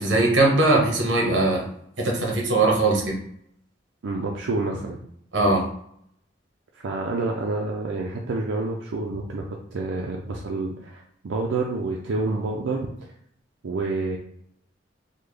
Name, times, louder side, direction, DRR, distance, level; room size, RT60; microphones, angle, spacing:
voice 1, 0.0-1.6 2.0-3.1 5.3-5.6, right 2 dB, 70° right, 0 dB, 1.0 m, -20 dB
voice 2, 4.0-5.0 6.8-12.9 13.6-14.2, right 3 dB, 90° right, -1 dB, 0.4 m, -28 dB
3.7 x 2.2 x 3.2 m, 0.70 s
head